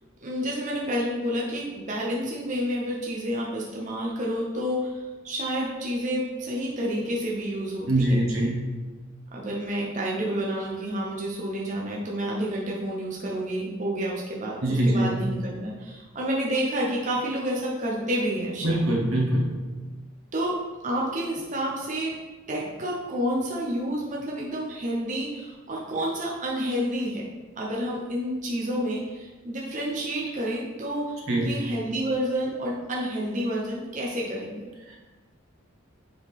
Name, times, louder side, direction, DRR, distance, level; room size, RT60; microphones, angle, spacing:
voice 1, 0.2-8.4 9.3-19.0 20.3-22.2 22.5-27.3 27.6-34.7, equal, 35° right, -3 dB, 0.7 m, -29 dB
voice 2, 7.9-8.7 14.6-15.2 18.6-19.6 31.3-31.5 34.9-35.0, right 1 dB, 80° right, -2 dB, 1.4 m, -23 dB
7.2 x 3.9 x 3.5 m, 1.3 s
head